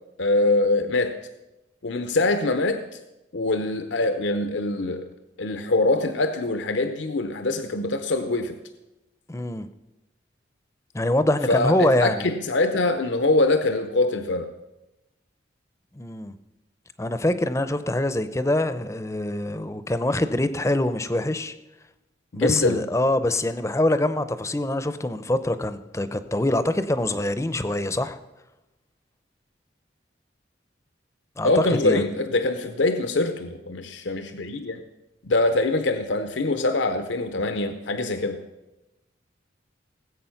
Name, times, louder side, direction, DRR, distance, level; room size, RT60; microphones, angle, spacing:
voice 1, 0.2-1.2 1.8-3.0 3.3-5.1 5.4-8.6 11.5-14.5 22.3-22.8 31.4-34.8 35.2-38.4, left 2 dB, 75° left, 8 dB, 0.7 m, -24 dB
voice 2, 9.3-9.7 10.9-12.3 15.9-16.3 17.0-21.5 22.4-28.2 31.4-32.0, left 1 dB, 15° left, 12 dB, 0.6 m, -24 dB
18.5 x 8.4 x 5.8 m, 0.98 s
head